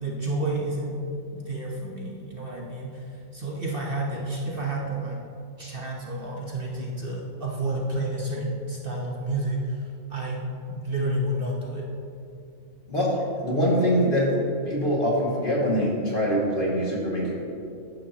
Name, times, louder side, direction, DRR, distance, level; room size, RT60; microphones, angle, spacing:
voice 1, 0.0-0.9 1.3-5.2 5.6-9.8 10.1-11.9, right 1 dB, 45° right, -2 dB, 1.2 m, -30 dB
voice 2, 12.9-14.3 14.7-17.3, equal, 40° left, -4 dB, 2.3 m, -24 dB
14.5 x 11.5 x 2.9 m, 2.7 s
omnidirectional pair, 1.4 m